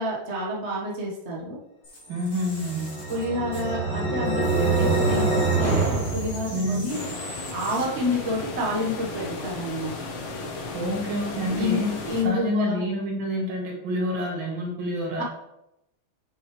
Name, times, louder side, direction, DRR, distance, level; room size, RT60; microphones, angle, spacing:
voice 1, 0.0-1.6 3.1-7.0 7.5-9.9 11.5-12.8 15.2-15.3, left 1 dB, 35° right, -4 dB, 1.6 m, -29 dB
sound 1, 1.8-7.8, left 1 dB, 40° left, 3.6 m, -42 dB
voice 2, 2.1-2.9 6.5-7.0 10.7-11.9 12.2-15.2, equal, 75° right, -1 dB, 2.5 m, -28 dB
sound 2, 2.5-7.0, right 3 dB, 5° left, 2.8 m, -25 dB
sound 3, 6.9-12.2, left 3 dB, 90° left, 2.0 m, -35 dB
8.1 x 6.6 x 3.3 m, 0.87 s
omnidirectional pair, 2.2 m